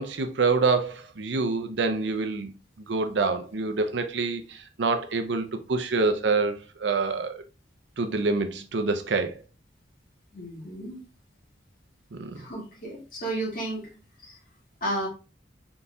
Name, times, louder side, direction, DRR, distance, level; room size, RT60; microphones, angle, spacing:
voice 1, 0.0-2.5 2.9-6.5 6.8-7.4 8.0-9.4 12.1-12.4, right 4 dB, 70° right, 0.6 m, -26 dB
voice 2, 10.3-11.0 12.4-13.8 14.2-14.4 14.8-15.1, right 1 dB, 45° left, 2.0 m, -32 dB
4.0 x 3.8 x 2.3 m
head